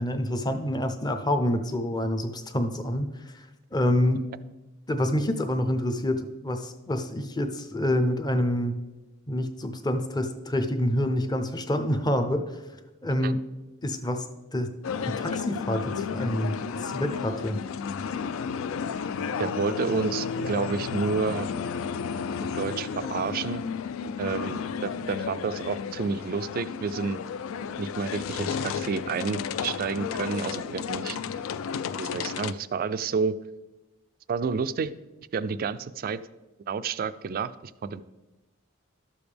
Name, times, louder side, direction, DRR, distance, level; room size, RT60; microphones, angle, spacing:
voice 1, 0.0-4.2 4.9-8.8 9.3-12.6 13.0-13.4 13.8-14.3 14.5-14.7 15.1-17.6, left 1 dB, 20° left, 8 dB, 0.6 m, -27 dB
sound 1, 14.8-32.5, left 6 dB, 65° left, 0.3 m, -32 dB
voice 2, 19.4-21.5 22.5-23.6 24.2-27.2 27.8-31.2 32.0-33.3 34.3-34.9 35.3-36.2 36.7-38.0, right 5 dB, 45° right, 15 dB, 0.3 m, -30 dB
12.0 x 7.0 x 3.4 m, 1.1 s
head